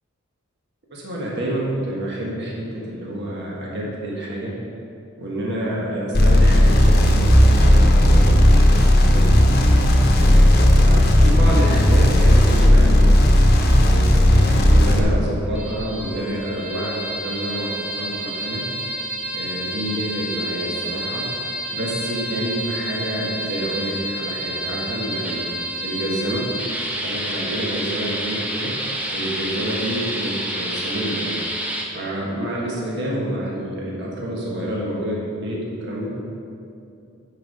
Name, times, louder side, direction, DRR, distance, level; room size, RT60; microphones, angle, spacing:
voice 1, 0.9-4.5 5.2-9.3 10.1-13.1 13.9-18.6 19.3-21.3 21.7-25.5 25.8-26.5 27.0-28.7 29.1-31.4 31.9-36.1, right 1 dB, 55° right, -4 dB, 1.5 m, -28 dB
sound 1, 6.1-15.0, left 1 dB, 50° left, 0.9 m, -14 dB
sound 2, 15.4-31.8, right 1 dB, 5° right, 0.8 m, -29 dB
10.0 x 4.8 x 5.3 m, 2.5 s
head